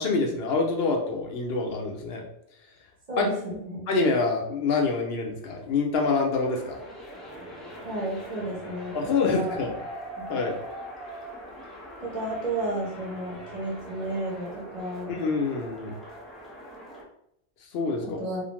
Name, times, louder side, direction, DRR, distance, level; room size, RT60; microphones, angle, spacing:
voice 1, 0.0-2.2 3.2-3.3 3.9-6.8 8.9-9.7 10.3-10.6 15.1-15.9 17.7-18.2, left 4 dB, 70° left, 1 dB, 0.8 m, -26 dB
voice 2, 3.1-3.8 7.8-9.7 10.2-10.3 12.0-15.2 18.0-18.4, right 2 dB, 40° right, -4 dB, 1.0 m, -32 dB
sound 1, 6.4-17.0, equal, ahead, 0.3 m, -42 dB
2.5 x 2.5 x 2.9 m, 0.78 s
omnidirectional pair, 1.1 m